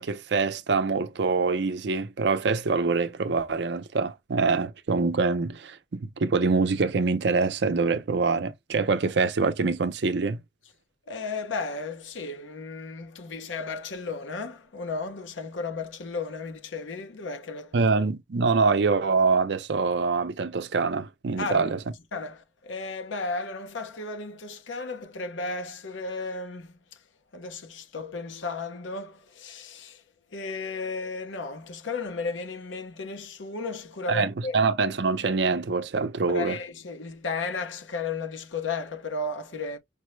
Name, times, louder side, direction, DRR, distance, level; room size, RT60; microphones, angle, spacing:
voice 1, 0.0-10.4 17.7-21.8 34.1-36.6, right 4 dB, 65° right, 0.5 m, -25 dB
voice 2, 11.1-17.8 21.4-21.7 22.1-27.0 27.3-30.0 30.3-34.6 36.3-39.8, left 3 dB, 90° left, 0.8 m, -34 dB
5.2 x 2.0 x 3.1 m
head